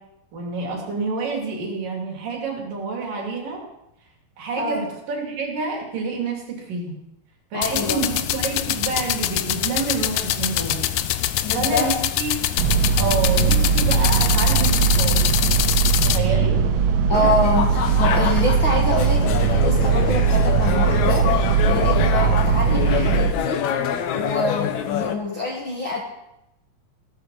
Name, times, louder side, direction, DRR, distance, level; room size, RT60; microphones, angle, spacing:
voice 1, 0.3-3.6 4.4-7.0 7.5-10.9 11.5-12.3 13.0-15.2 16.0-16.6, right 4 dB, 65° right, 0 dB, 4.4 m, -28 dB
voice 2, 7.5-8.0 11.4-11.9 17.1-23.6 24.1-26.0, left 2 dB, 45° left, -1 dB, 1.8 m, -26 dB
sound 1, 7.6-16.2, left 13 dB, 90° left, 1.7 m, -24 dB
sound 2, 12.6-23.3, right 6 dB, 85° right, 1.5 m, -19 dB
sound 3, 17.1-25.1, left 9 dB, 70° left, 1.9 m, -26 dB
15.0 x 13.0 x 4.1 m, 0.84 s
omnidirectional pair, 4.2 m